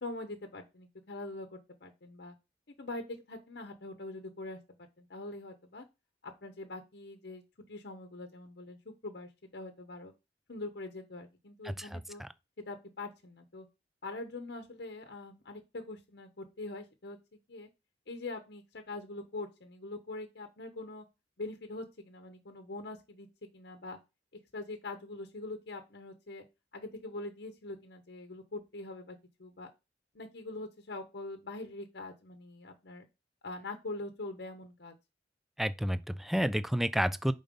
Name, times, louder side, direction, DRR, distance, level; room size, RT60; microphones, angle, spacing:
voice 1, 0.0-2.3 2.8-4.6 5.0-5.8 6.2-7.4 7.7-10.1 10.5-12.2 12.7-13.7 14.0-17.2 17.5-17.7 18.1-21.0 21.4-23.3 23.5-24.0 24.5-26.4 26.7-29.7 30.1-33.1 33.4-34.9, left 2 dB, 65° left, 0.9 m, -43 dB
voice 2, 11.6-12.3 35.6-37.3, equal, ahead, 0.3 m, -31 dB
5.2 x 4.0 x 5.2 m
head